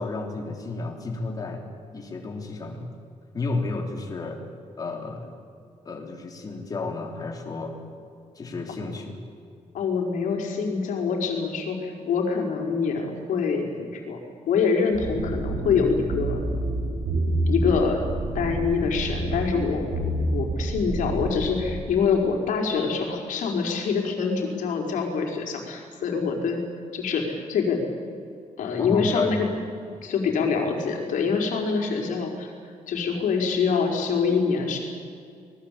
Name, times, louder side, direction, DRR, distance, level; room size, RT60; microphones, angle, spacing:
voice 1, 0.0-1.6 1.9-2.9 3.3-4.4 4.8-5.3 5.8-7.8 8.3-9.2 28.8-29.3, left 3 dB, 30° left, 1 dB, 3.4 m, -32 dB
voice 2, 9.7-14.2 14.5-16.4 17.5-19.9 20.3-26.6 26.9-27.8 28.6-29.5 30.0-32.5 32.9-34.8, left 5 dB, 85° left, 2 dB, 5.0 m, -25 dB
sound 1, 14.9-21.7, right 2 dB, 70° right, 6.1 m, -28 dB
26.0 x 20.5 x 8.6 m, 2.4 s
wide cardioid pair, 180°, 13 cm